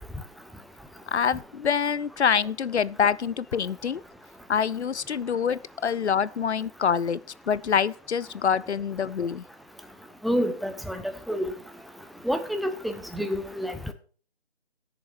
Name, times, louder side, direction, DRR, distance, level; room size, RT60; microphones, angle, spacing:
voice 1, 1.1-4.0 4.5-7.2 7.5-9.4, left 7 dB, 80° left, 0.6 m, -26 dB
voice 2, 10.2-11.0 11.3-11.5 12.2-13.7, equal, ahead, 0.4 m, -28 dB
18.0 x 6.9 x 3.0 m
figure-of-eight pair, 175°, 33 cm